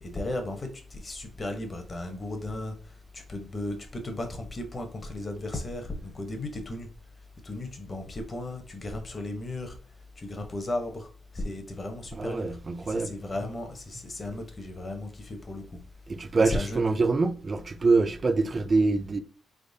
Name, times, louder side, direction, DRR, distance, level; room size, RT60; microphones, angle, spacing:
voice 1, 0.0-2.8 3.1-6.9 7.4-9.7 10.2-11.1 11.3-12.6 12.8-15.8 16.4-17.1, left 1 dB, 25° left, 0.8 m, -35 dB
voice 2, 12.2-13.1 16.1-19.2, right 3 dB, 30° right, 0.4 m, -25 dB
4.2 x 3.5 x 2.7 m
cardioid pair, 145°, 0 cm